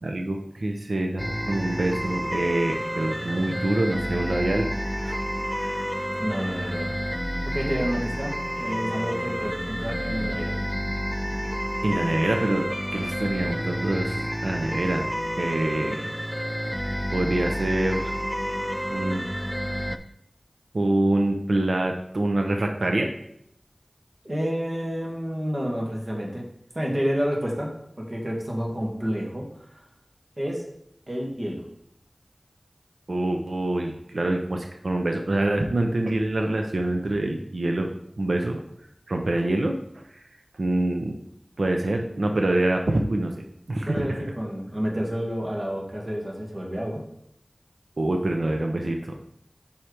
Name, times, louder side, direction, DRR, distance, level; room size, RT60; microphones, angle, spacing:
voice 1, 0.0-4.7 5.0-5.2 5.6-5.8 11.8-15.1 15.4-16.1 17.1-18.1 18.9-19.2 20.7-23.1 33.1-37.9 38.2-38.6 39.1-39.8 40.6-41.1 41.6-43.3 43.7-44.3 48.0-49.2, right 1 dB, 85° right, 3 dB, 0.6 m, -25 dB
sound 1, 1.2-20.0, equal, ahead, 0.5 m, -30 dB
voice 2, 6.2-6.9 7.4-10.6 24.2-26.4 26.7-29.8 30.4-30.6 31.1-31.6 43.9-47.0, equal, 55° right, -1 dB, 1.7 m, -29 dB
5.6 x 4.4 x 4.9 m, 0.73 s
wide cardioid pair, 40°, 0 cm